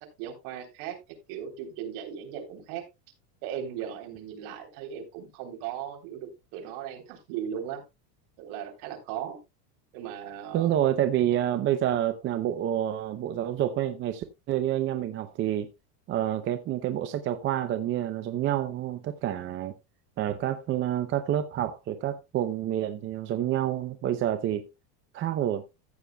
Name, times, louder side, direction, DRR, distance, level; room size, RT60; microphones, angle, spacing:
voice 1, 0.2-1.0 1.3-2.8 3.4-7.8 8.4-9.4 9.9-10.8, right 9 dB, 60° right, 3.5 m, -37 dB
voice 2, 10.5-15.7 16.1-19.7 20.2-24.7 25.1-25.6, right 11 dB, 25° right, 0.5 m, -28 dB
14.5 x 8.4 x 2.2 m
supercardioid pair, 155°, 46 cm